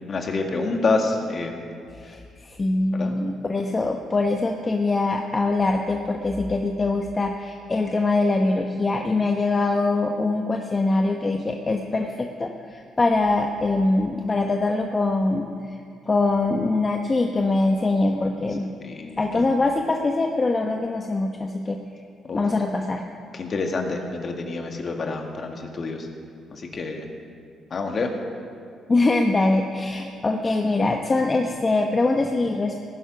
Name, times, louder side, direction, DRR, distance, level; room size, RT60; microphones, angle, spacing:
voice 1, 0.1-1.6 2.9-3.1 18.8-19.5 22.3-22.4 23.3-26.1 26.5-27.1 27.7-28.1, left 3 dB, 45° left, 3 dB, 1.9 m, -27 dB
voice 2, 1.9-15.8 16.1-18.7 19.2-21.8 22.3-23.0 28.9-32.8, left 2 dB, 25° left, 3 dB, 1.0 m, -23 dB
17.5 x 10.0 x 6.1 m, 2.4 s
cardioid pair, 90°, 0 cm